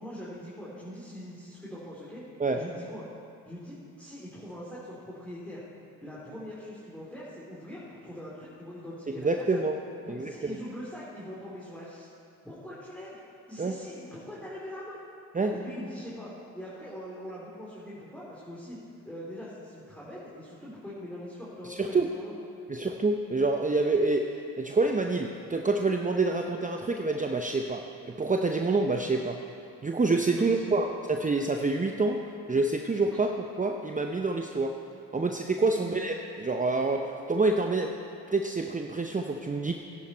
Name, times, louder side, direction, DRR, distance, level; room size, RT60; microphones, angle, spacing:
voice 1, 0.0-2.2 2.5-3.0 3.4-5.6 6.0-9.7 10.0-12.1 12.4-13.2 13.5-15.0 15.5-18.8 19.0-22.3 30.4-30.8 35.7-35.9, equal, 5° left, -8 dB, 3.5 m, -42 dB
voice 2, 9.2-9.7 10.1-10.6 13.6-13.8 15.3-15.5 21.6-22.1 22.7-24.2 24.6-27.8 28.1-29.4 29.8-32.2 32.5-34.7 35.1-37.9 38.3-39.7, right 3 dB, 20° right, 3 dB, 0.8 m, -27 dB
14.5 x 11.0 x 4.4 m, 2.5 s
hypercardioid pair, 45°, 42 cm